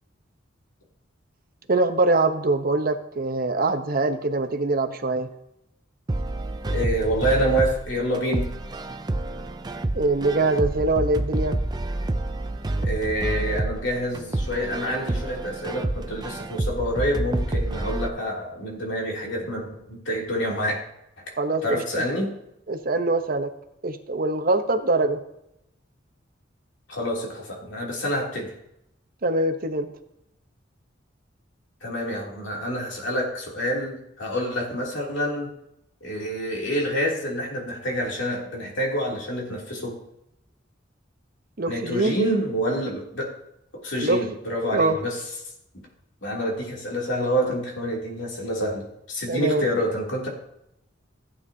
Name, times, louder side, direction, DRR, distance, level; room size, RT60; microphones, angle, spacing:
voice 1, 1.7-5.3 9.9-11.6 21.4-22.0 22.7-23.5 23.8-25.2 29.2-29.9 41.6-42.2 44.0-44.2 44.6-45.0 49.3-49.7, right 2 dB, 50° right, 6 dB, 0.9 m, -23 dB
sound 1, 6.1-18.1, right 2 dB, 20° right, 0.5 m, -28 dB
voice 2, 6.6-8.5 12.8-20.8 21.2-21.3 21.6-22.4 26.9-28.5 31.8-35.5 36.0-40.0 41.7-43.4 43.8-45.2 46.2-50.3, equal, 75° left, -2 dB, 3.0 m, -27 dB
15.0 x 8.7 x 2.8 m, 0.81 s
head